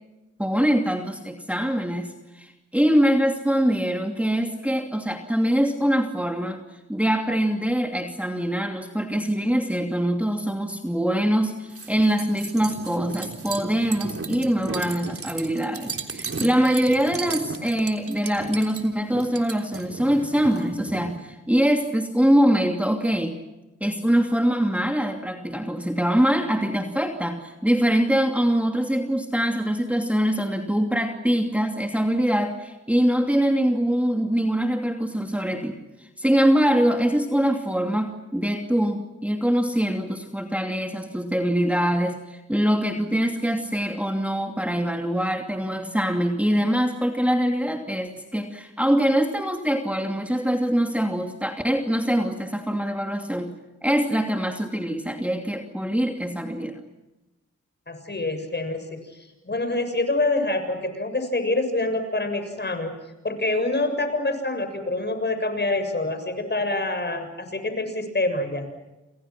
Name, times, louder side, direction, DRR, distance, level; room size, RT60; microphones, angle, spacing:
voice 1, 0.4-6.6 6.9-23.4 23.8-53.5 53.8-56.8, equal, 5° right, 3 dB, 2.7 m, -23 dB
sound 1, 11.7-21.2, right 4 dB, 50° right, 3.6 m, -35 dB
voice 2, 57.9-62.9 63.2-68.7, left 2 dB, 35° left, 8 dB, 7.1 m, -26 dB
28.5 x 28.0 x 6.1 m, 1.0 s
cardioid pair, 60°, 29 cm